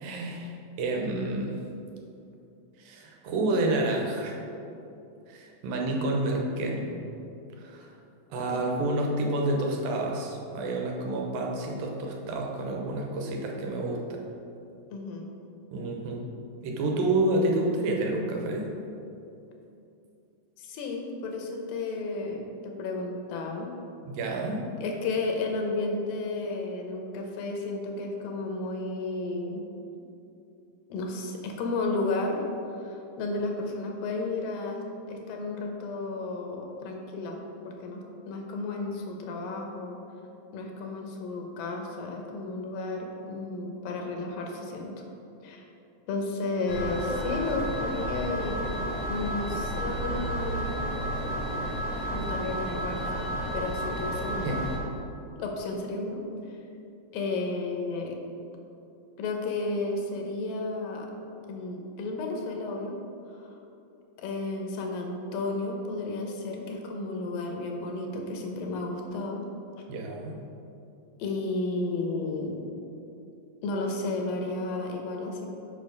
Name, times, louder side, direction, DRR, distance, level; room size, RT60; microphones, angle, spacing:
voice 1, 0.0-1.5 2.8-4.4 5.3-6.9 7.6-7.9 8.3-14.2 15.7-16.2 16.6-18.6 24.1-24.6 54.4-54.7 69.9-70.4, right 2 dB, 85° right, 0 dB, 2.7 m, -29 dB
voice 2, 14.9-15.3 20.6-23.7 24.8-29.6 30.9-32.5 32.8-34.8 35.1-40.0 40.5-45.1 45.4-45.7 46.1-48.6 49.1-50.8 52.1-53.1 53.5-54.5 55.4-56.2 56.5-56.6 57.1-58.2 59.2-61.1 61.5-62.9 63.3-63.6 64.2-69.4 71.2-72.6 73.6-75.5, left 3 dB, 75° left, 1 dB, 2.5 m, -33 dB
sound 1, 46.7-54.8, right 1 dB, 60° left, 1.5 m, -31 dB
6.8 x 5.7 x 5.2 m, 2.7 s
omnidirectional pair, 4.1 m